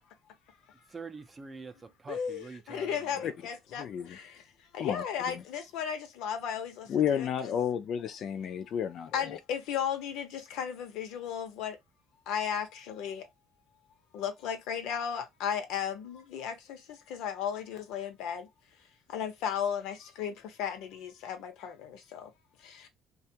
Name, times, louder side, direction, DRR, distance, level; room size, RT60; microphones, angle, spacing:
voice 1, 0.9-3.3, right 4 dB, 25° right, 0.5 m, -45 dB
voice 2, 2.1-4.4 4.7-7.5 9.1-11.8 12.3-13.3 14.1-18.5 19.1-22.3 22.6-22.9, left 8 dB, 80° left, 0.8 m, -35 dB
voice 3, 3.8-4.2 4.8-5.0 6.9-9.4, left 8 dB, 50° left, 0.5 m, -31 dB
2.5 x 2.4 x 2.8 m
cardioid pair, 120°, 0 cm